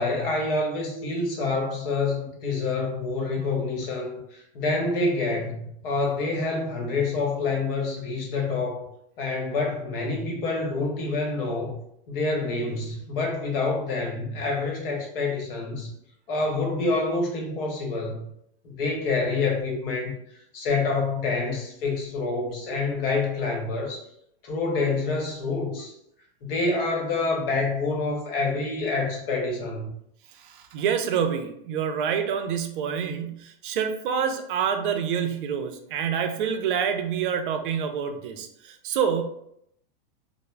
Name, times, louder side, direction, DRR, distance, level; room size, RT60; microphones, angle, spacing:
voice 1, 0.0-8.9 9.2-11.8 12.1-15.9 16.3-18.2 18.6-20.2 20.5-24.1 24.4-25.9 26.4-29.9, left 3 dB, 65° left, 0 dB, 1.0 m, -27 dB
voice 2, 30.4-39.2, right 7 dB, 60° right, 6 dB, 0.4 m, -27 dB
2.2 x 2.0 x 3.1 m, 0.73 s
supercardioid pair, 150°, 30 cm